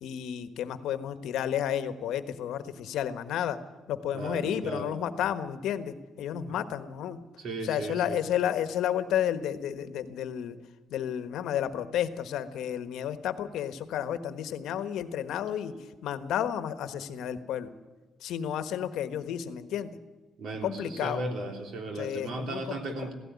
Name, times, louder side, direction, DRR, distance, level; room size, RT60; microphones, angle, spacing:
voice 1, 0.0-3.6 3.9-7.2 7.6-10.6 10.9-15.7 16.0-17.7 18.2-20.0 20.6-21.2 21.9-22.9, left 10 dB, 70° left, 11 dB, 1.3 m, -31 dB
voice 2, 4.1-5.0 7.4-8.2 20.4-23.1, right 2 dB, 55° right, 4 dB, 3.4 m, -36 dB
16.5 x 16.5 x 9.6 m, 1.2 s
cardioid pair, 165°, 0 cm